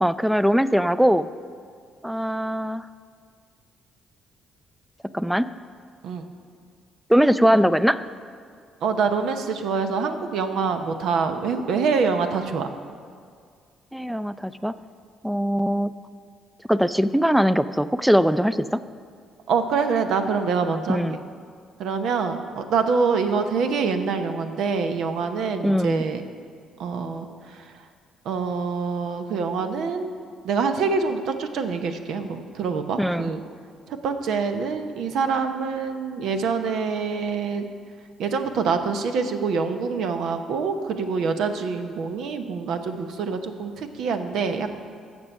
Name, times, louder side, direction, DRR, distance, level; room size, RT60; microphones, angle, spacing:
voice 1, 0.0-1.3 2.0-2.9 5.1-5.5 7.1-8.0 13.9-14.7 15.2-15.9 16.7-18.8 20.9-21.2 25.6-26.0 33.0-33.3, equal, 5° right, 15 dB, 0.4 m, -21 dB
voice 2, 8.8-12.7 19.5-21.0 21.8-26.2 26.8-27.3 28.3-30.1 30.4-33.4 34.0-37.7 38.2-44.8, right 5 dB, 70° right, 7 dB, 0.8 m, -25 dB
15.5 x 6.2 x 5.5 m, 2.1 s
hypercardioid pair, 50°, 0 cm